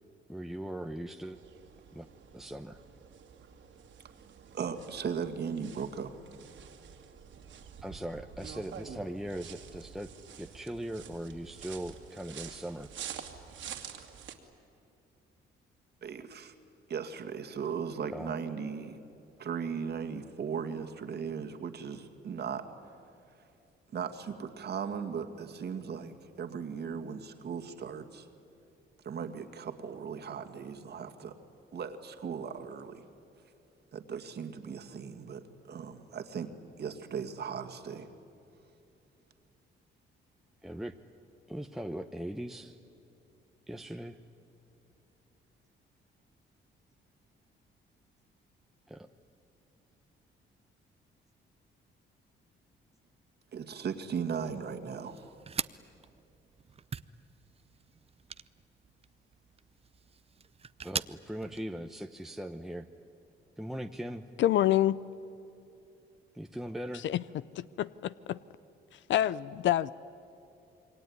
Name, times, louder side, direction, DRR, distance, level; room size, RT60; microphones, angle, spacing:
voice 1, 0.3-1.4 1.9-2.1 2.3-2.8 7.8-10.1 10.4-12.9 18.1-18.3 40.6-41.0 41.5-42.8 43.7-44.2 48.9-49.0 60.8-62.9 63.6-64.3 66.3-67.1, right 1 dB, ahead, 5 dB, 0.9 m, -39 dB
sound 1, 1.3-14.3, right 8 dB, 70° right, 2.5 m, -48 dB
voice 2, 4.5-6.1 16.0-16.5 16.9-19.0 19.4-22.7 23.9-28.3 29.0-31.4 31.7-33.0 33.9-36.5 36.8-38.1 53.5-55.3, right 6 dB, 55° right, 6 dB, 2.1 m, -37 dB
sound 2, 54.4-61.6, right 6 dB, 30° right, 0.6 m, -43 dB
voice 3, 64.4-65.0 67.0-67.2 67.5-68.4 69.1-69.9, left 12 dB, 70° left, 18 dB, 0.5 m, -27 dB
27.0 x 22.5 x 9.6 m, 2.8 s
cardioid pair, 90°, 20 cm